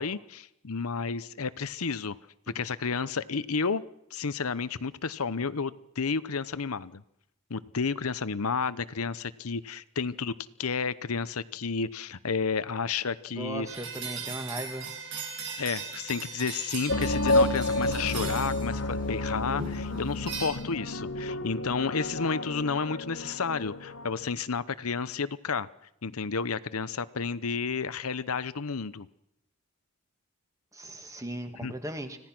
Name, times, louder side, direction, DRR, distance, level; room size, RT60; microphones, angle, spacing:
voice 1, 0.0-2.2 2.5-3.8 4.1-7.0 7.5-13.7 15.6-25.7 26.0-29.1 31.6-31.7, left 5 dB, 90° left, 15 dB, 0.9 m, -31 dB
voice 2, 13.3-14.9 30.7-32.2, right 1 dB, 15° right, 6 dB, 2.1 m, -37 dB
sound 1, 13.7-19.0 19.6-20.5, right 5 dB, 55° right, 7.2 m, -38 dB
sound 2, 16.9-24.3, left 2 dB, 60° left, 1.7 m, -30 dB
25.5 x 17.0 x 6.1 m, 0.79 s
head